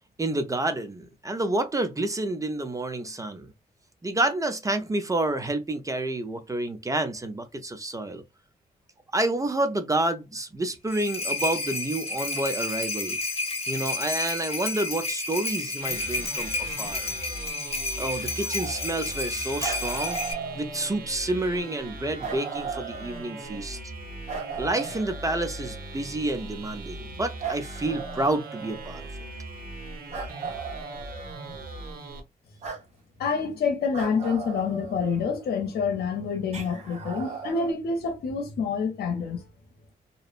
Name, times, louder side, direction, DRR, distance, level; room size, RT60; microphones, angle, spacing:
voice 1, 0.2-3.5 4.0-8.2 9.1-13.2 13.7-17.1 18.0-20.2 20.5-23.8 24.6-29.0, right 2 dB, 20° right, 0.5 m, -29 dB
sound 1, 10.7-20.3, left 3 dB, 40° left, 0.7 m, -31 dB
sound 2, 15.8-32.2, right 2 dB, 65° right, 0.9 m, -40 dB
sound 3, 17.9-19.3 19.6-21.2 22.2-23.7 24.3-25.9 27.4-29.1 30.1-31.8 32.6-32.8 33.9-35.6 36.5-37.7, right 5 dB, 45° right, 1.1 m, -37 dB
voice 2, 33.2-39.4, left 5 dB, 85° left, 0.7 m, -27 dB
2.7 x 2.0 x 2.4 m
cardioid pair, 100°, 16 cm